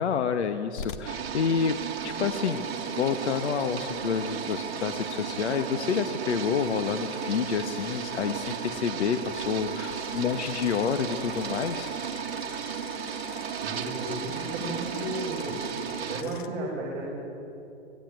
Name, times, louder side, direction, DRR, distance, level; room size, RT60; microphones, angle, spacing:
voice 1, 0.0-1.8 2.0-2.7 3.0-11.9, left 7 dB, 80° left, 8 dB, 1.4 m, -28 dB
sound 1, 0.8-16.5, left 6 dB, 50° left, 1.6 m, -44 dB
sound 2, 1.0-16.2, right 8 dB, 65° right, 1.9 m, -34 dB
voice 2, 13.6-15.6 16.0-17.1, right 1 dB, 25° right, -7 dB, 6.3 m, -34 dB
26.0 x 18.5 x 9.2 m, 3.0 s
hypercardioid pair, 170°, 33 cm